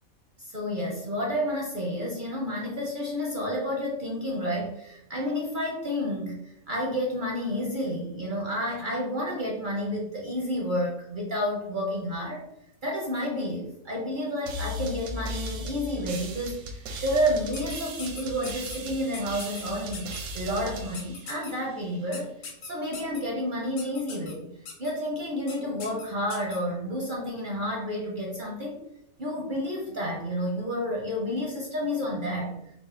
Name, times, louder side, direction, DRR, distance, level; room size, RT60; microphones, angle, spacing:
voice 1, 0.4-12.4 12.8-22.3 22.6-24.5 24.8-28.8 29.2-32.5, equal, 50° right, -2 dB, 0.6 m, -30 dB
sound 1, 14.5-22.0, equal, 85° right, 1.2 m, -37 dB
sound 2, 17.5-18.8 19.1-19.6 19.9-20.2 20.9-21.5 22.1-23.2 23.8-24.3 24.7-24.9 25.5-25.6 25.8-26.6, left 5 dB, 85° left, 1.3 m, -40 dB
4.4 x 2.1 x 4.2 m, 0.81 s
omnidirectional pair, 1.5 m